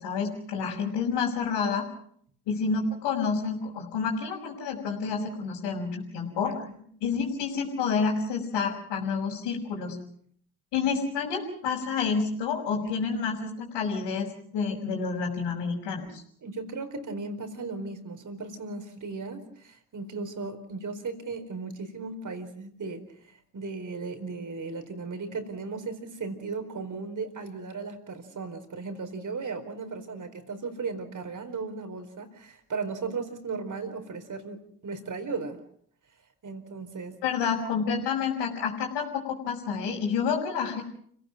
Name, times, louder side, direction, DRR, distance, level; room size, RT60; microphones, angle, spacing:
voice 1, 0.0-1.8 2.5-6.6 7.0-10.0 10.7-16.2 37.2-40.8, left 5 dB, 65° left, -5 dB, 5.1 m, -29 dB
voice 2, 6.4-6.8 12.8-12.9 16.4-35.6 36.4-37.2, right 4 dB, 45° right, 7 dB, 4.5 m, -36 dB
30.0 x 17.5 x 6.0 m, 0.65 s
hypercardioid pair, 50°, 44 cm